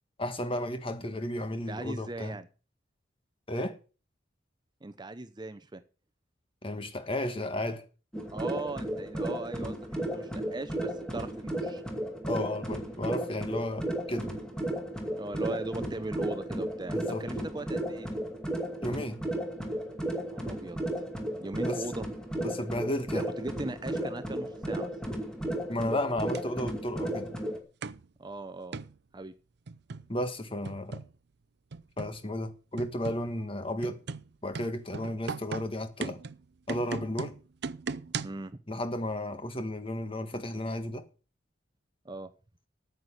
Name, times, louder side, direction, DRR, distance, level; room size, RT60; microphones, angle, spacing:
voice 1, 0.2-2.4 3.5-3.8 6.6-7.9 12.2-14.3 16.9-17.2 18.8-19.2 21.6-21.8 22.4-23.3 25.7-27.3 30.1-31.0 32.0-34.0 34.4-36.2 36.7-37.4 38.7-41.1, left 1 dB, 30° left, 1.6 m, -33 dB
voice 2, 1.5-2.5 4.8-5.8 8.3-11.8 15.2-18.2 20.1-21.0 21.4-22.0 23.1-24.9 28.2-28.8 29.1-29.3 38.2-38.6 42.0-42.3, right 2 dB, 25° right, 0.7 m, -39 dB
sound 1, 8.1-27.6, right 1 dB, 5° left, 2.4 m, -34 dB
sound 2, 26.3-26.4 27.8-28.1 28.7-29.0 29.7-30.1 30.6-31.1 31.7-32.2 32.8-33.3 33.8-38.5, right 5 dB, 60° right, 0.5 m, -38 dB
9.5 x 8.0 x 8.2 m
head